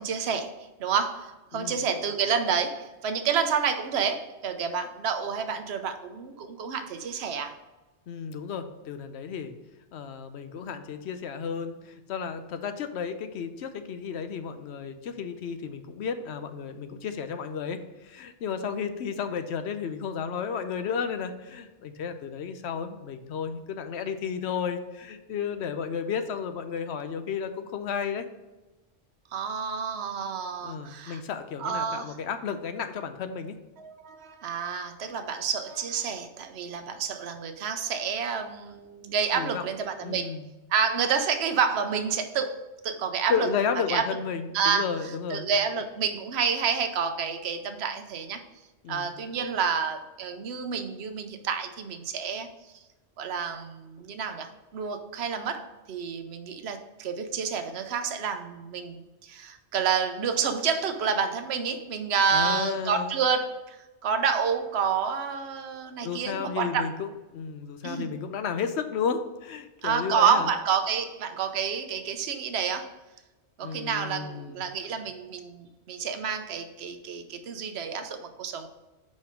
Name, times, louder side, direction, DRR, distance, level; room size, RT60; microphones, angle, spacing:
voice 1, 0.0-7.5 29.3-31.2 31.6-32.2 33.8-40.4 40.7-43.5 43.9-44.0 44.5-44.9 45.3-48.4 48.9-52.5 53.2-63.8 64.0-66.8 67.8-68.1 69.8-72.9 73.6-78.7, right 6 dB, 65° right, 7 dB, 0.9 m, -29 dB
voice 2, 1.5-1.8 8.1-9.5 9.9-28.2 30.6-33.6 39.3-39.7 40.0-40.5 43.3-45.5 48.8-49.1 62.3-63.2 66.0-70.5 73.6-74.7, left 6 dB, 70° left, 9 dB, 0.9 m, -33 dB
5.4 x 5.2 x 5.0 m, 1.1 s
omnidirectional pair, 1.2 m